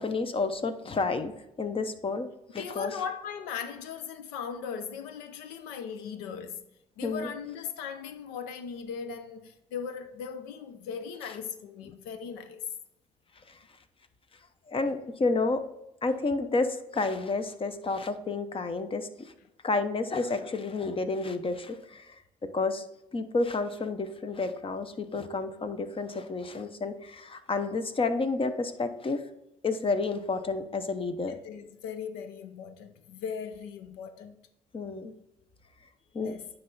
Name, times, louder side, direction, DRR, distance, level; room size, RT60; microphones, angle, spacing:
voice 1, 0.0-1.3 1.6-2.3 2.5-3.0 7.0-7.3 13.5-13.6 14.7-15.6 16.0-19.3 19.6-22.1 22.5-22.8 23.1-29.2 29.6-31.3 34.7-35.1 36.1-36.3, left 3 dB, 35° left, 0.9 m, -30 dB
voice 2, 2.6-6.7 7.0-12.6 31.3-34.4 36.2-36.5, left 7 dB, 90° left, 0.6 m, -38 dB
9.3 x 3.4 x 4.0 m
supercardioid pair, 70°, 16 cm